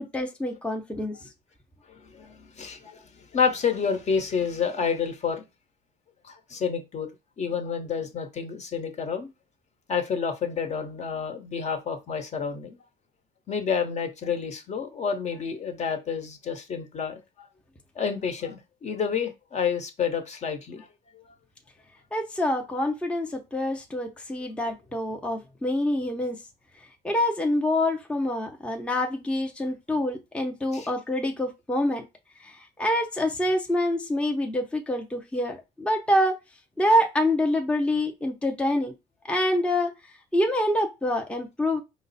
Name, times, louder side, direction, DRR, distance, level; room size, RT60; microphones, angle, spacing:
voice 1, 0.0-1.3 22.1-26.4 27.0-32.0 32.4-36.4 36.8-38.9 39.3-39.9 40.3-41.8, left 1 dB, 5° left, 0.6 m, -26 dB
voice 2, 2.1-3.0 3.3-5.4 6.2-7.1 7.4-9.3 9.9-12.8 13.5-17.2 18.0-20.9 30.7-30.9, left 6 dB, 40° left, 0.9 m, -29 dB
4.9 x 2.0 x 4.0 m
cardioid pair, 110°, 17 cm